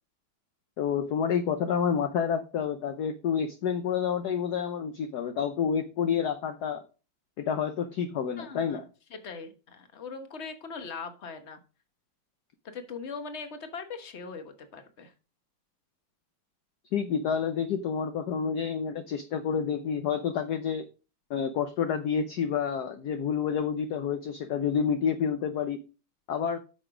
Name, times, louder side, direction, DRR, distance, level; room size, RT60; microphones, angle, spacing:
voice 1, 0.8-6.8 7.4-8.8 16.9-20.9 21.3-25.8 26.3-26.6, left 7 dB, 65° left, 1.1 m, -29 dB
voice 2, 8.4-8.8 9.1-11.6 12.6-15.1, left 5 dB, 35° left, 1.3 m, -40 dB
8.8 x 6.5 x 4.9 m
omnidirectional pair, 2.3 m